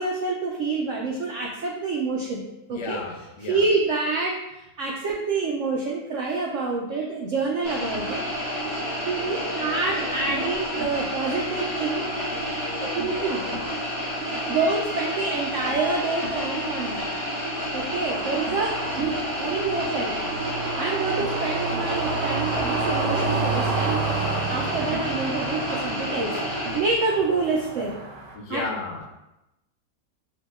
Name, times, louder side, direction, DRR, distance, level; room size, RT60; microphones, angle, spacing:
voice 1, 0.0-3.0 3.4-8.2 9.0-12.0 12.9-13.4 14.5-17.1 17.7-20.2 20.7-24.1 24.5-28.0 28.5-28.6, right 3 dB, 85° right, 0 dB, 0.6 m, -27 dB
voice 2, 2.7-3.7 28.3-29.1, left 3 dB, 80° left, 2 dB, 1.3 m, -33 dB
sound 1, 7.6-26.8, equal, 55° right, 2.2 m, -30 dB
sound 2, 8.0-17.8 18.2-18.9, left 2 dB, 35° right, 0.4 m, -42 dB
sound 3, 18.0-28.3, right 4 dB, 70° right, 1.3 m, -30 dB
6.5 x 2.8 x 2.3 m, 0.92 s
omnidirectional pair, 1.8 m